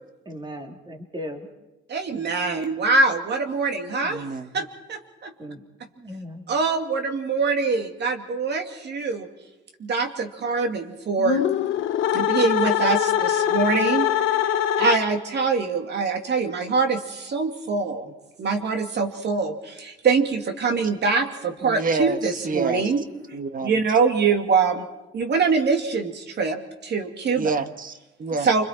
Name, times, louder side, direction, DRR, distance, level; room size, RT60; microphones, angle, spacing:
voice 1, 0.2-1.5 5.4-5.6 6.0-6.5, equal, 25° right, 3 dB, 3.3 m, -37 dB
voice 2, 1.9-4.2 4.5-5.3 6.5-9.3 9.8-11.4 12.1-14.4 14.8-18.1 18.4-23.0 23.6-24.8 25.1-27.5 28.4-28.6, right 4 dB, 60° right, 5 dB, 2.4 m, -24 dB
voice 3, 4.0-4.6 21.6-22.9 23.3-23.7 27.4-28.5, right 3 dB, 45° right, 9 dB, 1.5 m, -28 dB
sound 1, 11.2-15.4, left 10 dB, 80° left, 1.0 m, -23 dB
28.5 x 22.0 x 4.5 m, 1.0 s
cardioid pair, 90°, 20 cm